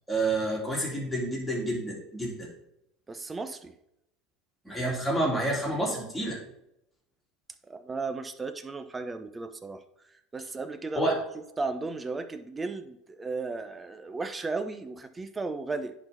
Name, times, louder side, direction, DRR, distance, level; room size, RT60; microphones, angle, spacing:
voice 1, 0.1-2.5 4.6-6.4 10.9-11.2, right 1 dB, 5° left, -4 dB, 2.9 m, -29 dB
voice 2, 3.1-3.7 7.7-9.8 10.3-11.1 11.3-15.9, right 3 dB, 15° right, 9 dB, 0.7 m, -35 dB
10.5 x 4.1 x 4.1 m, 0.81 s
supercardioid pair, 125°, 0 cm